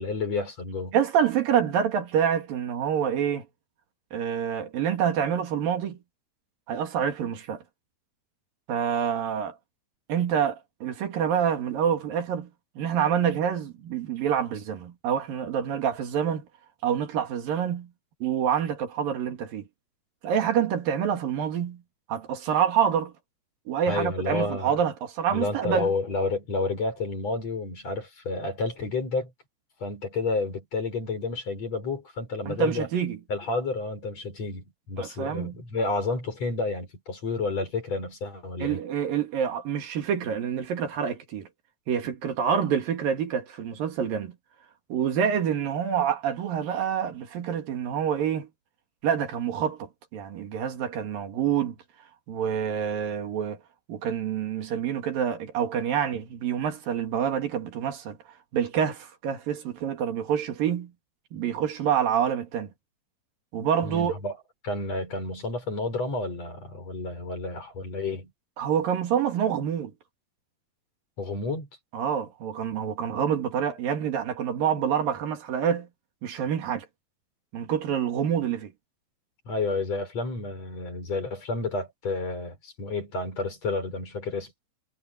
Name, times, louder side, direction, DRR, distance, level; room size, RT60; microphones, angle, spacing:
voice 1, 0.0-1.0 23.9-24.8 25.3-29.3 29.8-32.9 33.3-38.8 63.8-64.4 64.6-68.3 71.2-71.7 79.5-84.5, left 3 dB, 45° left, 7.0 m, -30 dB
voice 2, 0.9-3.5 4.1-6.0 6.7-7.6 8.7-9.6 10.1-12.5 12.8-16.5 16.8-17.9 18.2-19.7 20.2-21.8 22.1-23.1 23.7-25.9 32.5-33.2 35.0-35.6 38.6-41.5 41.9-44.4 44.9-48.5 49.0-51.8 52.3-53.6 53.9-58.2 58.5-60.9 61.3-62.7 63.5-64.2 68.6-69.9 71.9-75.9 76.2-76.9 77.5-78.7, right 8 dB, 75° right, 3.8 m, -27 dB
omnidirectional pair, 4.2 m